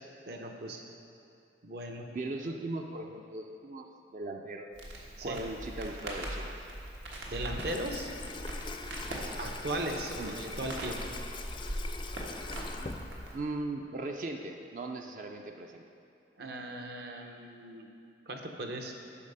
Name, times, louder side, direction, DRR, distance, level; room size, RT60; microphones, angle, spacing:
voice 1, 0.3-0.8 1.6-2.1 5.2-5.4 7.3-8.1 9.4-11.0 16.4-17.9 18.3-18.9, right 1 dB, 60° right, 3 dB, 0.8 m, -37 dB
voice 2, 2.1-4.7 5.2-6.5 10.2-10.3 13.3-15.8, right 2 dB, 45° right, 3 dB, 0.4 m, -38 dB
Crackle, 4.7-13.4, right 1 dB, 80° right, 1.4 m, -40 dB
Water tap faucet / Sink (filling or washing), 7.3-13.6, left 3 dB, 25° left, 0.4 m, -43 dB
8.5 x 5.7 x 5.5 m, 2.6 s
head